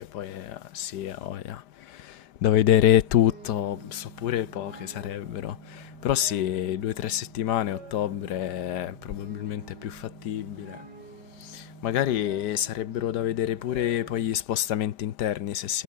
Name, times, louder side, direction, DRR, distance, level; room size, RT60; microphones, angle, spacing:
voice 1, 0.0-1.6 2.4-5.5 6.0-9.9 10.2-10.8 11.8-15.8, left 11 dB, 65° left, 1.4 m, -26 dB
sound 1, 2.7-14.4, right 3 dB, 65° right, 4.6 m, -47 dB
omnidirectional pair, 2.0 m